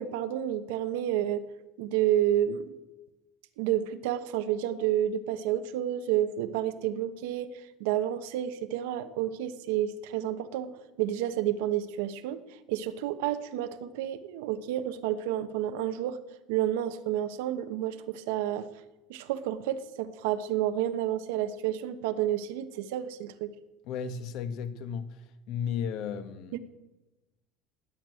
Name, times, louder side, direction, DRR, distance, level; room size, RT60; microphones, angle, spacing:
voice 1, 0.0-1.5 1.8-2.7 3.6-7.5 7.8-12.4 12.7-16.2 16.5-18.7 19.1-23.5 26.5-26.6, right 11 dB, 85° right, 10 dB, 1.1 m, -30 dB
voice 2, 23.8-25.2 25.5-26.6, left 7 dB, 50° left, 11 dB, 1.3 m, -34 dB
19.0 x 8.2 x 9.1 m, 1.1 s
cardioid pair, 180°, 0 cm